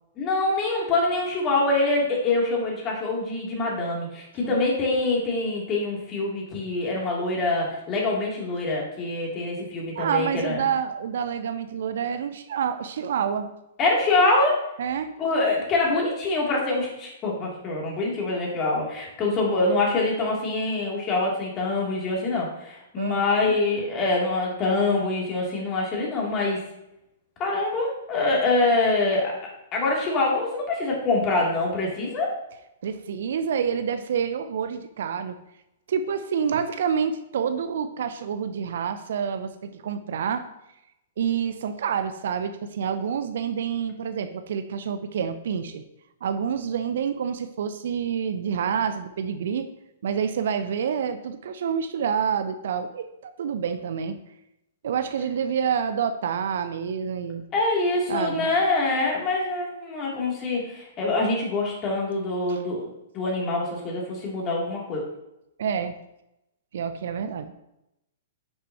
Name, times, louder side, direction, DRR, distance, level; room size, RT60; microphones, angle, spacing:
voice 1, 0.2-10.6 13.8-14.6 15.2-26.6 27.4-29.4 29.7-32.3 57.5-62.9 63.1-65.0, left 2 dB, 30° left, -2 dB, 2.9 m, -25 dB
voice 2, 10.0-13.5 14.8-15.1 23.0-23.6 32.8-35.4 35.9-40.4 41.2-45.8 46.2-49.7 50.0-54.2 54.8-57.4 58.1-58.5 62.5-62.6 65.6-65.9 66.7-67.5, right 7 dB, 55° right, 10 dB, 0.6 m, -28 dB
9.9 x 6.8 x 3.0 m, 0.86 s
figure-of-eight pair, 110°, 0 cm